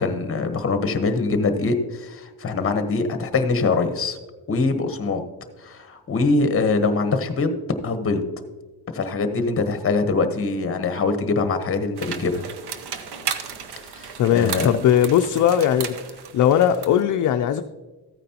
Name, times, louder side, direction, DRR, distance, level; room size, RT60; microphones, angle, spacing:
voice 1, 0.0-4.2 4.5-5.2 5.6-7.6 7.8-8.2 8.9-12.5 13.9-14.7, left 3 dB, 35° left, 8 dB, 1.0 m, -23 dB
sound 1, 12.0-17.0, right 7 dB, 80° right, 0.9 m, -34 dB
voice 2, 14.2-17.6, left 10 dB, 50° left, 7 dB, 0.5 m, -19 dB
14.0 x 9.2 x 2.9 m, 1.2 s
cardioid pair, 145°, 39 cm